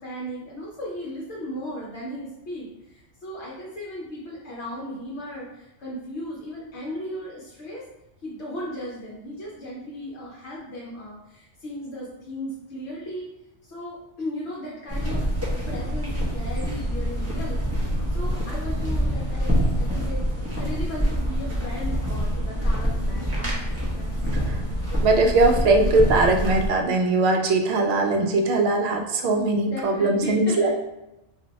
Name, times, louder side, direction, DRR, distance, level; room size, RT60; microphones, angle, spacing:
voice 1, 0.0-7.8 8.2-13.3 13.6-15.3 15.7-17.7 18.1-20.2 20.6-23.6 23.9-25.1 29.7-30.7, equal, 65° left, -5 dB, 0.9 m, -36 dB
sound 1, 14.9-26.7, equal, 20° right, 0.5 m, -26 dB
voice 2, 25.0-30.7, right 2 dB, 65° right, 2 dB, 0.7 m, -20 dB
2.6 x 2.1 x 3.9 m, 0.89 s
omnidirectional pair, 1.3 m